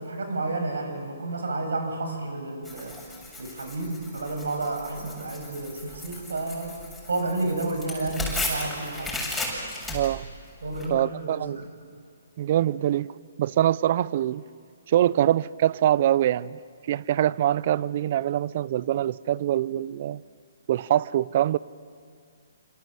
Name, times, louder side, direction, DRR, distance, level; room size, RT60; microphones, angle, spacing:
voice 1, 0.0-3.0 3.4-6.8 7.1-9.2 10.6-11.7, right 2 dB, 80° right, 5 dB, 6.7 m, -31 dB
Tearing, 2.6-10.9, left 2 dB, 5° left, 7.2 m, -35 dB
voice 2, 9.9-10.3 10.9-11.6 12.4-13.1 13.4-14.4 14.9-16.6 16.9-20.2 20.7-21.6, right 12 dB, 45° right, 20 dB, 0.6 m, -24 dB
28.0 x 27.0 x 7.7 m, 2.2 s
hypercardioid pair, 145°, 0 cm